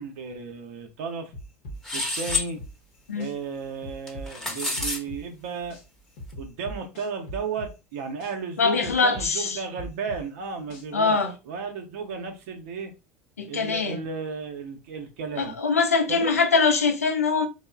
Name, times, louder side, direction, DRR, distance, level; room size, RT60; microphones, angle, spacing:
voice 1, 0.0-1.3 1.9-2.6 3.1-5.8 6.4-11.2 11.5-12.9 13.5-15.6 16.1-16.3, right 5 dB, 65° right, 0.6 m, -34 dB
sound 1, 1.3-3.3 3.8-5.8 6.2-8.3 8.8-11.1, equal, 60° left, 0.7 m, -39 dB
sound 2, 1.8-2.5 4.1-5.0, left 3 dB, 5° left, 0.8 m, -28 dB
voice 2, 8.6-9.6 10.9-11.3 13.4-14.0 15.4-17.5, left 4 dB, 85° left, 0.4 m, -23 dB
2.9 x 2.0 x 2.3 m
figure-of-eight pair, 80°, 8 cm